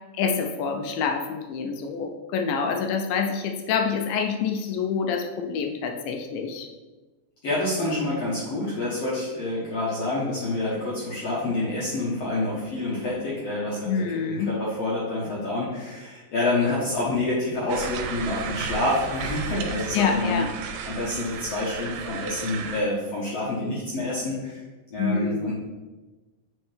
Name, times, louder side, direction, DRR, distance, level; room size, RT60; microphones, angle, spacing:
voice 1, 0.1-6.7 13.9-14.5 19.9-20.5 25.0-25.5, left 6 dB, 80° left, 4 dB, 2.0 m, -27 dB
voice 2, 7.4-24.6 24.9-25.5, left 2 dB, 65° left, -7 dB, 1.6 m, -28 dB
sound 1, 17.7-22.8, right 6 dB, 85° right, 2.5 m, -34 dB
8.6 x 4.4 x 3.4 m, 1.2 s
omnidirectional pair, 4.4 m